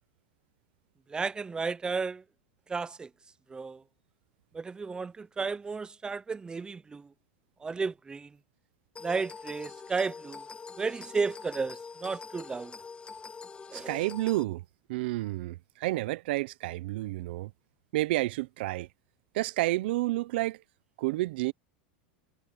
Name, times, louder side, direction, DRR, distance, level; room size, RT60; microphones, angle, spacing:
voice 1, 1.1-2.2 2.7-3.1 3.5-3.8 4.5-7.1 7.6-8.3 9.0-10.5 10.8-12.7 13.7-14.0, right 4 dB, 15° right, 0.9 m, -33 dB
sound 1, 9.0-14.4, left 5 dB, 15° left, 2.6 m, -45 dB
voice 2, 13.7-14.6 14.9-17.5 17.9-18.9 19.3-20.6 21.0-21.5, right 18 dB, 70° right, 0.9 m, -30 dB
supercardioid pair, 120°, 6 cm